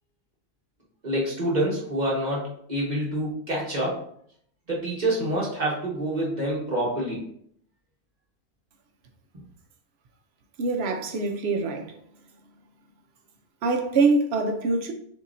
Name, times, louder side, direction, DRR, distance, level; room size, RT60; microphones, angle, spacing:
voice 1, 1.0-4.0 4.7-7.2, right 1 dB, 35° right, 1.4 m, -27 dB
voice 2, 10.6-11.9 13.6-14.9, right 3 dB, 60° right, 0.8 m, -24 dB
6.7 x 2.8 x 2.6 m
omnidirectional pair, 1.4 m